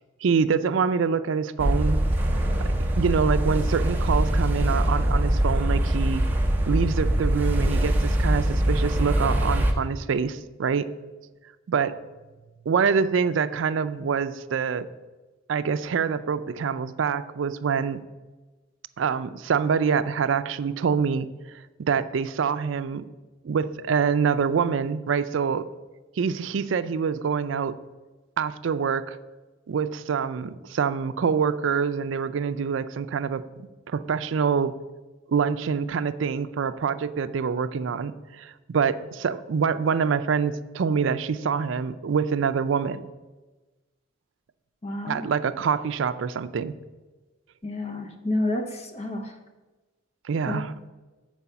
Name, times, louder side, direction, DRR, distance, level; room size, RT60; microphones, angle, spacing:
voice 1, 0.2-2.0 2.6-6.2 6.7-10.9 11.7-12.0 12.7-14.9 15.5-18.0 19.0-21.3 21.8-23.1 23.4-25.7 26.2-27.8 28.4-29.2 29.7-34.7 35.3-43.0 45.1-46.7 50.2-50.7, right 6 dB, 70° right, 12 dB, 0.4 m, -25 dB
sound 1, 1.6-9.7, right 1 dB, 10° right, 0.7 m, -23 dB
voice 2, 44.8-45.3 47.6-49.4 50.4-50.7, left 1 dB, 30° left, 5 dB, 0.6 m, -30 dB
7.1 x 4.7 x 6.8 m, 1.2 s
head